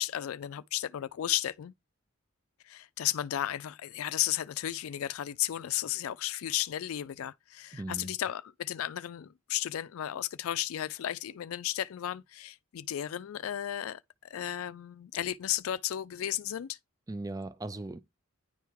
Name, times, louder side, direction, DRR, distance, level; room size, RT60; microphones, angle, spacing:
voice 1, 0.0-1.7 2.7-14.0 14.3-16.8, left 12 dB, 80° left, 0.4 m, -34 dB
voice 2, 7.7-8.1 17.1-18.0, right 2 dB, 15° right, 0.5 m, -38 dB
10.0 x 3.5 x 4.6 m
head